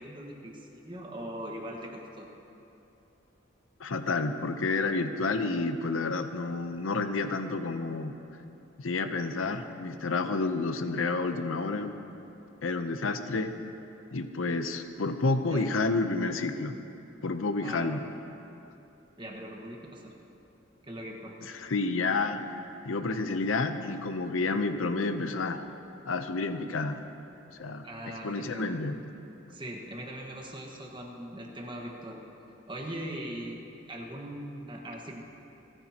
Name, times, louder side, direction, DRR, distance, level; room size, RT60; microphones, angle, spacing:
voice 1, 0.0-2.3 15.4-15.7 17.6-18.0 19.2-20.1 20.8-21.5 27.8-28.7 29.5-32.2 32.7-33.6 33.9-35.2, right 1 dB, 25° right, 0 dB, 1.5 m, -40 dB
voice 2, 3.8-8.2 8.8-11.9 12.6-13.5 14.1-16.7 17.2-18.0 21.4-22.4 22.8-25.6 26.1-27.0 27.6-29.0, left 3 dB, 90° left, 8 dB, 0.8 m, -30 dB
29.0 x 10.0 x 2.9 m, 2.9 s
head